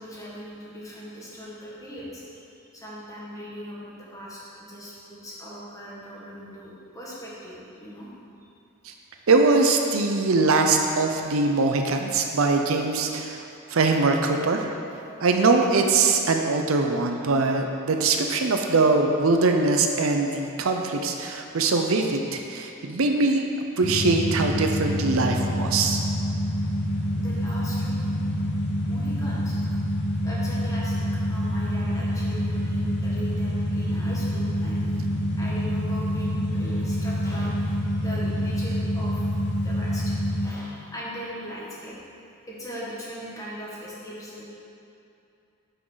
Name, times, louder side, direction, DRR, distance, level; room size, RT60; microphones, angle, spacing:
voice 1, 0.0-2.2 2.7-8.1 25.1-25.6 27.1-28.2 28.9-29.6 30.2-35.0 35.4-39.3 39.6-42.0 42.5-44.4, equal, 15° left, -7 dB, 1.7 m, -39 dB
voice 2, 9.3-13.4 13.7-14.7 15.2-23.5 23.8-26.0, right 3 dB, 65° right, 3 dB, 0.6 m, -22 dB
sound 1, 23.8-40.5, equal, 55° left, 1.1 m, -26 dB
9.9 x 6.0 x 4.0 m, 2.7 s
head